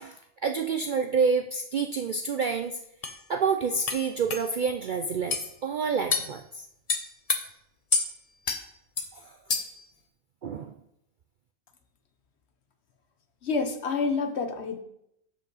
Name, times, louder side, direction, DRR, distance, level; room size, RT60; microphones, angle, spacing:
voice 1, 0.0-2.8 3.3-6.6 9.1-9.4 10.4-10.7, right 5 dB, 60° right, 6 dB, 0.5 m, -28 dB
sound 1, 2.4-2.5 3.0-3.2 3.9-4.0 4.3-4.4 5.3-5.5 6.1-6.3 6.9-7.4 7.9-8.1 8.5-8.6 9.0-9.1 9.5-9.8, left 4 dB, 35° left, 0.7 m, -27 dB
voice 2, 13.4-14.8, left 4 dB, 60° left, 7 dB, 1.2 m, -28 dB
12.0 x 5.4 x 4.0 m, 0.77 s
omnidirectional pair, 1.3 m